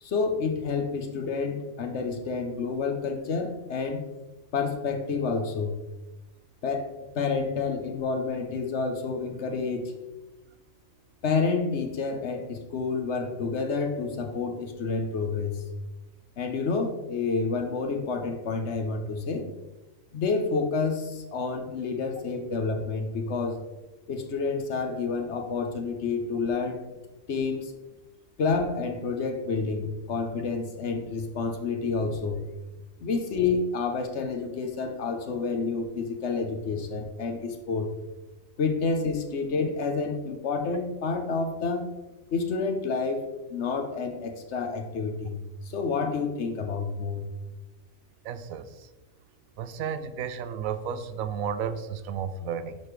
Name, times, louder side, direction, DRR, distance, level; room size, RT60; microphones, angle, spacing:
voice 1, 0.0-4.0 4.5-5.8 6.6-9.9 11.2-15.6 16.4-19.5 20.1-23.6 24.1-26.8 27.3-27.7 28.4-32.4 33.0-37.9 38.6-41.9 42.3-45.4 45.6-47.2, left 4 dB, 60° left, 5 dB, 1.0 m, -29 dB
voice 2, 48.2-48.9 49.6-52.8, right 7 dB, 80° right, 11 dB, 1.0 m, -33 dB
10.5 x 4.3 x 3.2 m, 1.1 s
omnidirectional pair, 1.4 m